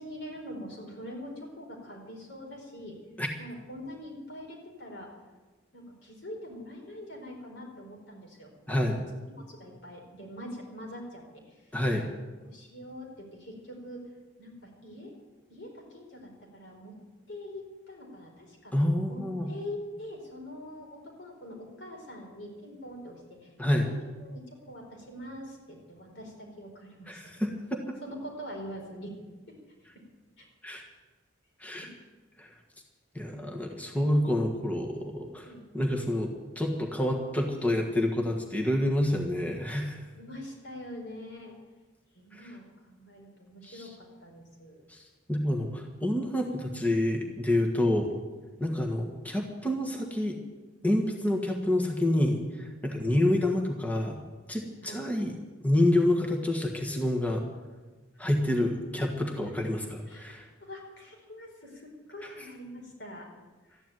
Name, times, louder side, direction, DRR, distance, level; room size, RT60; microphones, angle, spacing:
voice 1, 0.0-3.0 3.4-5.1 5.7-8.9 9.3-11.7 12.4-14.0 14.4-15.1 15.5-16.9 17.3-18.7 19.1-27.4 28.0-29.1 30.4-30.5 31.8-31.9 33.3-33.5 35.4-35.6 40.1-41.5 42.1-44.8 52.8-53.0 54.8-55.1 59.4-59.5 60.1-60.3 60.6-63.3 63.7-63.8, equal, 60° left, 0 dB, 4.6 m, -44 dB
voice 2, 8.7-9.0 11.7-12.0 18.7-19.5 23.6-23.8 27.1-27.8 30.6-30.8 31.6-31.9 32.4-32.5 33.1-36.3 36.5-40.0 42.3-42.5 43.6-43.9 44.9-45.0 45.3-48.1 48.6-50.4 50.8-54.2 54.5-55.3 55.6-57.4 58.2-60.5, left 1 dB, 10° left, 1 dB, 1.5 m, -28 dB
13.5 x 10.5 x 9.1 m, 1.3 s
head